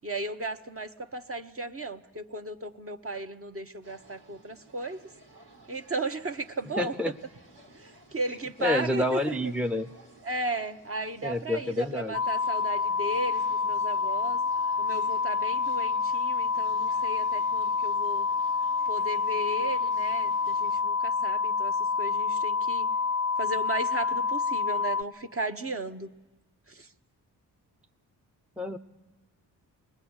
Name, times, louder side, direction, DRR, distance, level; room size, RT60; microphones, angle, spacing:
voice 1, 0.0-5.0 5.7-6.9 7.7-9.5 10.2-14.4 14.8-18.3 18.9-22.9 23.4-26.1 26.7-26.9, right 2 dB, 30° right, 6 dB, 1.1 m, -35 dB
sound 1, 3.8-20.8, right 2 dB, 85° right, 2.4 m, -55 dB
voice 2, 6.8-7.1 8.6-9.9 11.2-12.1 28.6-28.8, left 1 dB, 5° right, 6 dB, 0.8 m, -28 dB
sound 2, 12.1-25.0, left 5 dB, 35° left, 0.7 m, -28 dB
21.5 x 19.5 x 8.1 m, 1.2 s
supercardioid pair, 40°, 43 cm